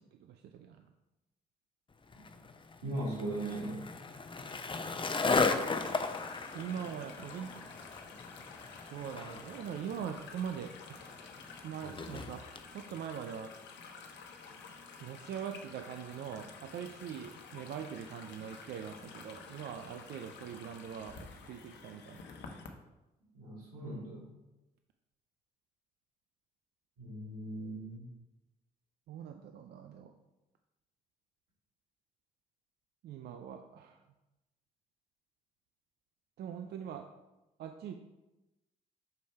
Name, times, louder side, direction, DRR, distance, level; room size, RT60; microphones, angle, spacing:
voice 1, 0.1-0.8 6.5-7.5 8.8-11.1 11.6-13.5 15.0-22.3 29.1-30.1 33.0-34.0 36.4-37.1 37.6-38.0, right 8 dB, 60° right, 6 dB, 0.6 m, -42 dB
Skateboard, 2.1-12.7, left 4 dB, 25° left, 0.8 m, -36 dB
voice 2, 2.8-3.8 23.3-24.3 27.0-28.1, right 1 dB, 85° right, -5 dB, 2.5 m, -38 dB
sound 1, 5.4-22.7, left 5 dB, 65° left, 1.0 m, -51 dB
6.9 x 5.1 x 4.5 m, 1.0 s
hypercardioid pair, 50°, 19 cm